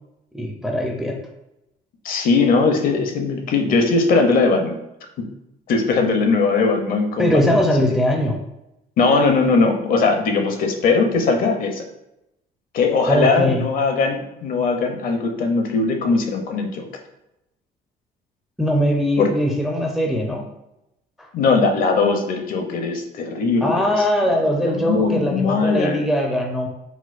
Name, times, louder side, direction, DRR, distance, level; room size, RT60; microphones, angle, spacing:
voice 1, 0.3-1.2 7.2-8.4 13.1-13.7 18.6-20.4 21.2-21.3 23.6-26.7, equal, ahead, 1 dB, 0.4 m, -21 dB
voice 2, 2.0-4.8 5.7-7.6 9.0-11.8 12.7-16.9 19.2-19.3 21.3-23.8 24.6-26.0, left 4 dB, 55° left, 4 dB, 0.5 m, -19 dB
4.2 x 2.1 x 2.4 m, 0.89 s
cardioid pair, 110°, 17 cm